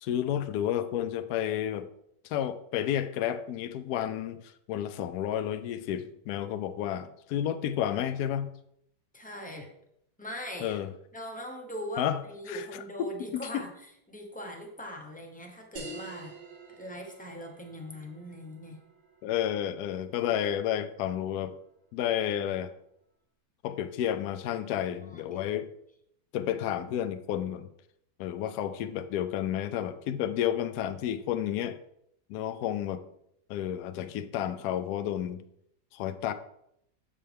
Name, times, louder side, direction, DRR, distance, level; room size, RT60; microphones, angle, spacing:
voice 1, 0.0-1.9 2.2-8.5 10.6-10.9 12.0-12.2 12.5-12.6 13.0-13.6 19.2-21.5 21.9-22.7 23.6-25.7 26.3-27.7 28.2-31.8 32.3-33.0 33.5-35.4 35.9-36.3, left 10 dB, 70° left, 11 dB, 1.0 m, -31 dB
voice 2, 9.1-9.7 10.2-10.8 11.1-13.7 14.1-16.4 16.7-18.8 24.8-25.2, equal, 10° left, 1 dB, 0.5 m, -41 dB
sound 1, 15.8-20.8, right 2 dB, 80° right, 1.8 m, -48 dB
7.4 x 5.5 x 3.4 m, 0.74 s
omnidirectional pair, 1.9 m